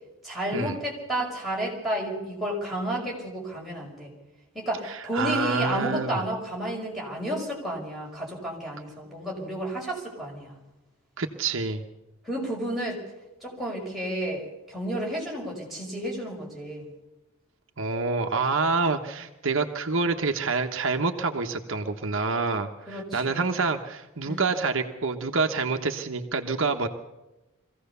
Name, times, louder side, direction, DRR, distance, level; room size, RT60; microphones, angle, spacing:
voice 1, 0.2-4.1 4.5-10.6 12.2-13.0 13.4-16.9 22.9-23.6 24.2-24.5, right 1 dB, ahead, -4 dB, 5.7 m, -31 dB
voice 2, 4.8-6.2 11.2-11.8 17.8-26.9, right 4 dB, 65° right, 4 dB, 1.2 m, -27 dB
23.5 x 16.0 x 6.9 m, 1.0 s
head